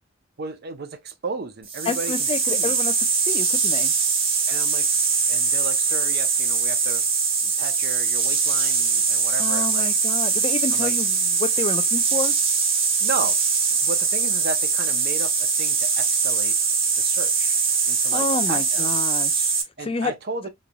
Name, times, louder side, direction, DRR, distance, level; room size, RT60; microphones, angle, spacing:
voice 1, 0.4-2.8 4.5-7.0 7.4-9.9 10.7-11.0 13.0-13.4 13.8-16.6 17.0-17.6 17.9-18.9 19.8-20.5, right 4 dB, 55° right, 0.6 m, -34 dB
sound 1, 1.7-19.6, right 5 dB, 30° right, 1.0 m, -22 dB
voice 2, 1.9-2.9 3.3-3.9 9.4-12.3 18.1-19.5 19.8-20.1, left 3 dB, 30° left, 0.4 m, -29 dB
3.9 x 3.1 x 2.2 m
head